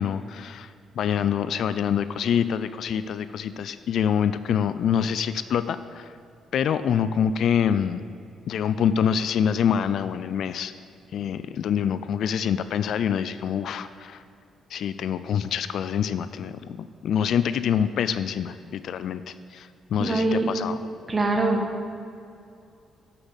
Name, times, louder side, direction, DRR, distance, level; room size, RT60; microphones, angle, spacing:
voice 1, 0.0-6.2 6.5-8.0 8.5-10.7 11.1-14.2 14.7-20.7, left 8 dB, 70° left, 13 dB, 0.3 m, -26 dB
voice 2, 20.0-20.5 21.1-21.6, right 2 dB, 30° right, 3 dB, 1.5 m, -23 dB
7.2 x 6.8 x 8.0 m, 2.4 s
cardioid pair, 90°, 0 cm